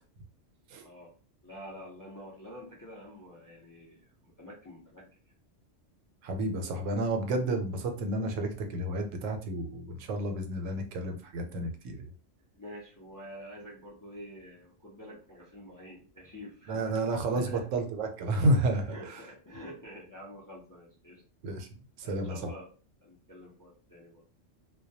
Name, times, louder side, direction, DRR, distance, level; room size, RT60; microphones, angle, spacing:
voice 1, 0.8-1.1 1.4-5.3 12.5-17.0 17.3-17.6 18.9-21.2 22.0-22.7 23.0-24.2, equal, 25° left, -4 dB, 0.4 m, -48 dB
voice 2, 6.2-12.0 16.7-19.2 21.4-21.7 22.0-22.5, right 1 dB, 90° right, 4 dB, 1.0 m, -31 dB
2.2 x 2.1 x 2.7 m, 0.38 s
omnidirectional pair, 1.3 m